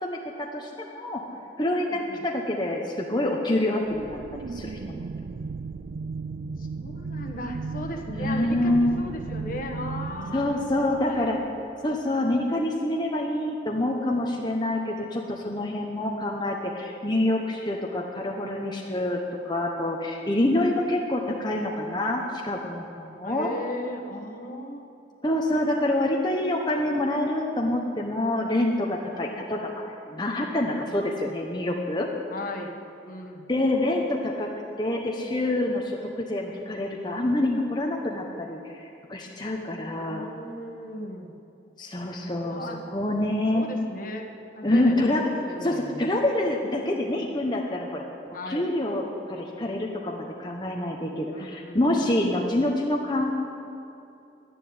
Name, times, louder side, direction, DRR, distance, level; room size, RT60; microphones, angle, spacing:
voice 1, 0.0-1.2 1.6-4.2 4.5-5.0 8.1-9.1 10.3-11.4 11.8-19.2 19.4-23.5 25.2-32.1 33.5-34.5 34.8-40.2 41.8-43.7 44.6-45.3 45.6-48.0 48.5-53.4, left 1 dB, 25° left, 0 dB, 1.1 m, -26 dB
voice 2, 1.9-2.2 6.6-11.3 16.0-16.2 23.2-24.8 29.1-29.5 30.7-31.1 32.3-32.7 33.0-33.5 39.8-41.3 42.4-42.8 43.5-44.3 44.5-44.9 45.3-46.1 48.3-48.7 51.3-51.8, left 1 dB, 45° left, 2 dB, 1.4 m, -37 dB
sound 1, 3.9-12.1, right 4 dB, 50° right, 0.3 m, -36 dB
12.0 x 10.5 x 9.6 m, 2.7 s
head